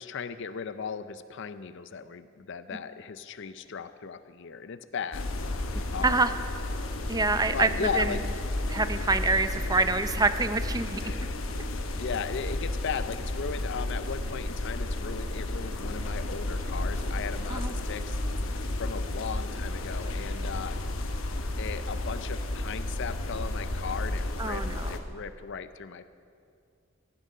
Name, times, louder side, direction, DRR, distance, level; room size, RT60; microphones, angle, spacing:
voice 1, 0.0-5.3 5.9-6.2 7.5-8.2 11.0-11.5 12.0-18.2 18.8-20.8 21.6-26.1, left 6 dB, 65° left, 12 dB, 0.6 m, -37 dB
sound 1, 5.1-25.0, left 1 dB, 85° left, 1.0 m, -32 dB
voice 2, 5.7-6.3 7.1-7.7 7.9-8.2 8.7-11.2 17.5-17.7 24.4-24.9, right 3 dB, 20° right, 10 dB, 0.5 m, -26 dB
15.0 x 11.5 x 5.5 m, 2.4 s
head